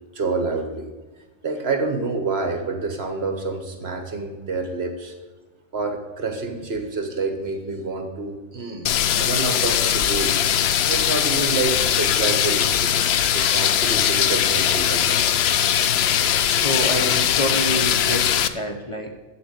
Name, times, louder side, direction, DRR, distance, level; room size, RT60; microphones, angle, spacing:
voice 1, 0.1-0.9 1.4-5.1 5.7-8.9 9.2-10.6 10.8-13.0 13.3-15.3 15.8-16.1, right 3 dB, 55° right, 6 dB, 1.5 m, -28 dB
sound 1, 8.9-18.5, left 9 dB, 65° left, 0.8 m, -20 dB
voice 2, 16.6-19.2, equal, 30° left, 2 dB, 0.9 m, -27 dB
7.6 x 7.5 x 8.3 m, 1.3 s
omnidirectional pair, 1.3 m